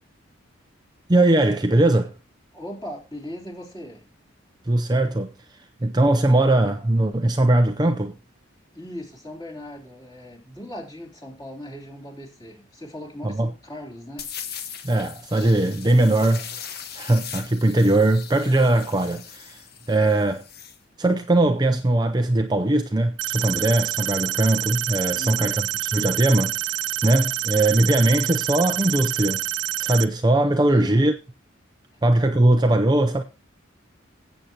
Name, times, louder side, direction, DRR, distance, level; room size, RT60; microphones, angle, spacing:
voice 1, 1.1-2.1 4.7-8.1 13.2-13.5 14.8-16.5 16.9-19.6 19.9-20.4 21.0-26.6 27.0-29.4 29.8-31.1 32.0-33.2, right 1 dB, 20° right, 0.5 m, -20 dB
voice 2, 2.5-4.1 8.7-14.3 20.1-20.3 25.1-25.6 30.7-31.0, equal, 20° left, 3.4 m, -38 dB
sound 1, 14.2-20.8, left 8 dB, 50° left, 1.2 m, -39 dB
sound 2, 23.2-30.0, right 14 dB, 65° right, 0.6 m, -27 dB
17.0 x 8.0 x 2.9 m
head